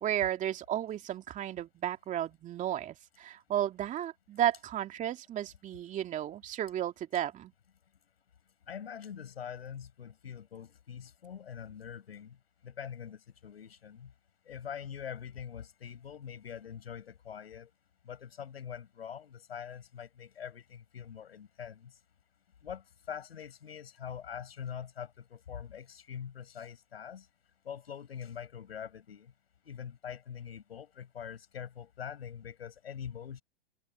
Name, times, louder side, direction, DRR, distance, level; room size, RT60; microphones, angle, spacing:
voice 1, 0.0-7.5, right 11 dB, 25° right, 2.5 m, -33 dB
voice 2, 8.7-12.4 12.6-14.1 14.4-17.7 18.0-21.9 22.6-27.3 27.6-29.3 29.6-33.4, left 8 dB, 80° left, 7.8 m, -44 dB
hypercardioid pair, 120°, 30 cm